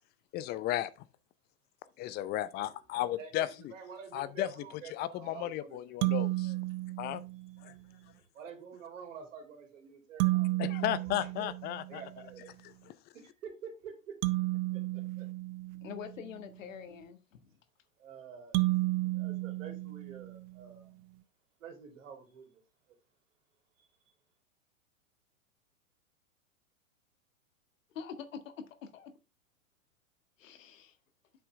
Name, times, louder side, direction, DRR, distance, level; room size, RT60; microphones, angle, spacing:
voice 1, 0.3-0.9 2.0-3.7 4.1-4.5 4.9-6.5 7.0-7.2 7.6-7.7 10.6-12.0 12.6-13.0, left 14 dB, 25° left, 0.5 m, -34 dB
voice 2, 3.7-6.6 7.6-7.8 8.3-11.5 11.9-12.5 13.1-14.2 14.7-15.3 18.0-18.6 19.1-21.0 21.6-22.6 23.8-23.9, right 6 dB, 65° right, 3.0 m, -49 dB
sound 1, 6.0-7.7 10.2-12.2 14.2-16.4 18.5-20.6, right 20 dB, 35° right, 0.7 m, -32 dB
voice 3, 15.8-17.6 27.9-29.1 30.4-31.0, left 7 dB, 65° left, 1.7 m, -45 dB
8.1 x 5.9 x 3.3 m
hypercardioid pair, 115°, 42 cm